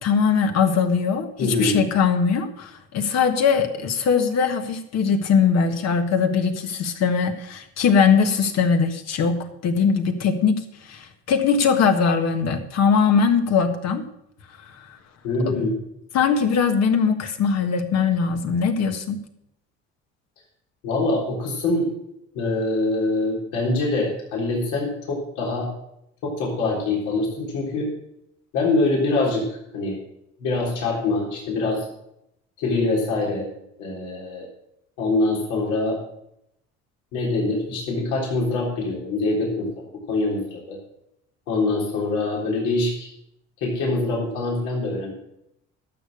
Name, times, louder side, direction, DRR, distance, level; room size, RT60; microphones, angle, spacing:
voice 1, 0.0-14.0 15.4-15.7 16.1-19.2, left 6 dB, 65° left, 6 dB, 1.6 m, -21 dB
voice 2, 1.4-1.8 15.2-15.7 20.8-21.9 22.3-25.7 26.2-27.9 28.5-30.0 30.4-31.9 32.6-33.5 33.8-34.5 35.0-36.0 37.1-39.7 40.1-40.8 41.5-43.1 43.6-45.1, left 2 dB, 80° left, -2 dB, 3.8 m, -24 dB
12.0 x 6.9 x 6.5 m, 0.79 s
cardioid pair, 95°, 29 cm